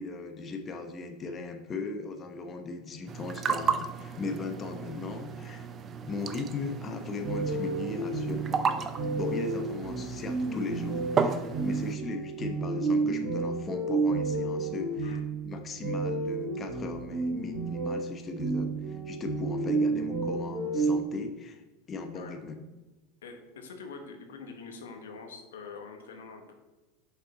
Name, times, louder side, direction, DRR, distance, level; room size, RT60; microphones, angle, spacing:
voice 1, 0.0-5.7 6.0-8.9 9.1-21.6 21.9-22.6, left 3 dB, 30° left, 5 dB, 0.8 m, -38 dB
sound 1, 3.1-11.9, right 6 dB, 30° right, 0.6 m, -34 dB
sound 2, 7.2-21.0, right 3 dB, 55° right, 1.5 m, -31 dB
voice 2, 23.2-26.5, left 4 dB, 85° left, 4 dB, 1.1 m, -44 dB
6.4 x 5.4 x 4.1 m, 1.1 s
hypercardioid pair, 100°, 0 cm